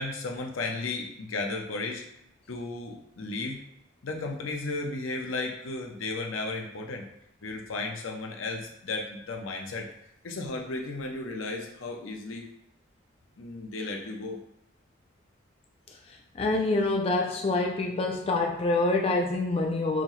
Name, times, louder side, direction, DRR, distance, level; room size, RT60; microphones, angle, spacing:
voice 1, 0.0-2.0 2.5-3.6 4.0-7.0 7.4-9.9 10.2-12.5 13.4-14.4, left 3 dB, 85° left, 2 dB, 0.7 m, -34 dB
voice 2, 15.9-20.0, left 2 dB, 30° left, 1 dB, 0.3 m, -26 dB
5.9 x 2.0 x 3.1 m, 0.78 s
head